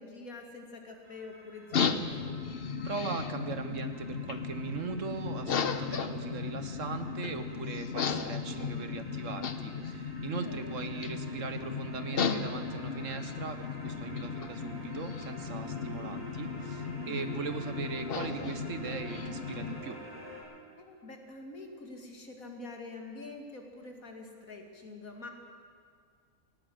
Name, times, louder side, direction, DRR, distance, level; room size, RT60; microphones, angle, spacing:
voice 1, 0.0-2.3 10.2-10.8 17.0-17.3 20.8-25.3, left 2 dB, 70° left, 2 dB, 2.8 m, -46 dB
sound 1, 1.0-20.4, right 1 dB, 40° right, 7.6 m, -49 dB
sound 2, 1.7-19.8, left 6 dB, 45° left, 1.0 m, -35 dB
voice 2, 2.8-20.0, right 5 dB, 60° right, 9 dB, 1.5 m, -39 dB
18.5 x 18.0 x 7.9 m, 2.2 s
omnidirectional pair, 1.5 m